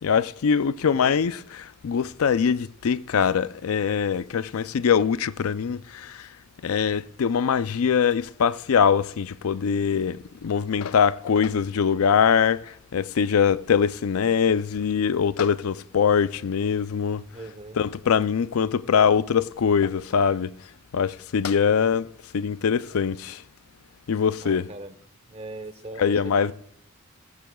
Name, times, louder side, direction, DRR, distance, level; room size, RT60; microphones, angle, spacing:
voice 1, 0.0-6.3 6.6-17.2 17.8-20.5 20.9-22.1 22.3-23.4 24.1-24.7 26.0-26.5, left 7 dB, 90° left, 0.4 m, -23 dB
voice 2, 0.8-1.2 17.3-17.8 18.6-18.7 24.4-24.9 25.3-26.5, right 2 dB, 30° right, 0.9 m, -40 dB
18.5 x 15.0 x 2.3 m
head